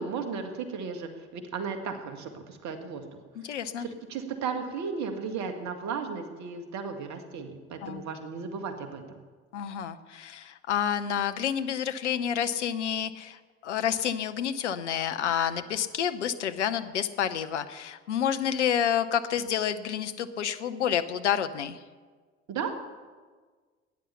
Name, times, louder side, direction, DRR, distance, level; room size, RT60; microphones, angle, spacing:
voice 1, 0.0-3.2 3.8-9.2 22.5-22.7, right 5 dB, 55° right, 6 dB, 2.1 m, -35 dB
voice 2, 3.4-3.9 7.8-8.0 9.5-13.4 13.6-21.8, left 9 dB, 80° left, 9 dB, 0.8 m, -29 dB
17.0 x 9.9 x 7.1 m, 1.5 s
figure-of-eight pair, 50°, 34 cm